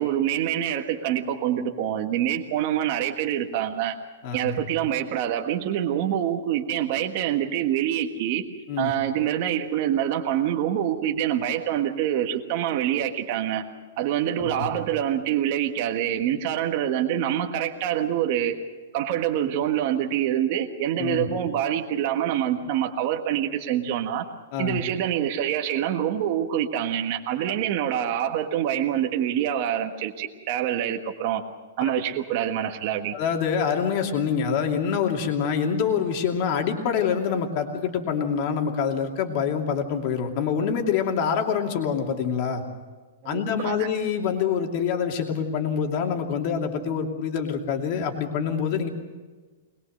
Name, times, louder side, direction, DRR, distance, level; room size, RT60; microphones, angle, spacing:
voice 1, 0.0-4.0 4.3-8.4 8.8-13.6 14.0-18.6 18.9-24.2 24.6-31.4 31.8-33.2 43.2-43.9, right 10 dB, 35° right, 3 dB, 1.4 m, -26 dB
voice 2, 4.2-4.6 8.7-8.9 14.4-14.7 21.0-21.3 24.5-24.8 31.8-31.9 33.1-42.6 43.2-48.9, left 7 dB, 35° left, 3 dB, 2.6 m, -26 dB
22.0 x 21.0 x 6.6 m, 1.3 s
supercardioid pair, 175°, 0 cm